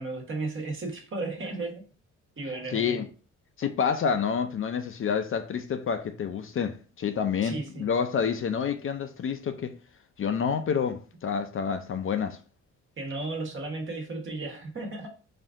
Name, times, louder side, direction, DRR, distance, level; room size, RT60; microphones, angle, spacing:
voice 1, 0.0-1.8 2.4-3.0 7.4-7.9 13.0-15.1, right 2 dB, 40° right, 1.4 m, -34 dB
voice 2, 2.7-3.1 3.6-9.7 10.2-12.4, left 6 dB, 45° left, 0.5 m, -28 dB
4.3 x 2.6 x 3.6 m
cardioid pair, 90°, 30 cm